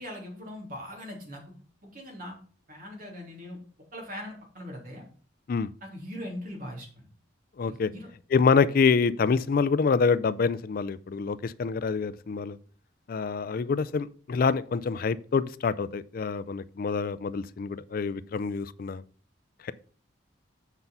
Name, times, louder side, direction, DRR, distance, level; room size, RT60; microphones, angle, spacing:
voice 1, 0.0-1.4 1.8-2.4 2.7-3.6 3.9-5.1 5.8-7.1 7.7-8.1, left 1 dB, 50° right, 3.2 m, -40 dB
voice 2, 7.6-7.9 8.3-12.6 13.1-19.0 19.6-19.7, left 5 dB, 50° left, 0.4 m, -26 dB
8.2 x 5.4 x 5.6 m
head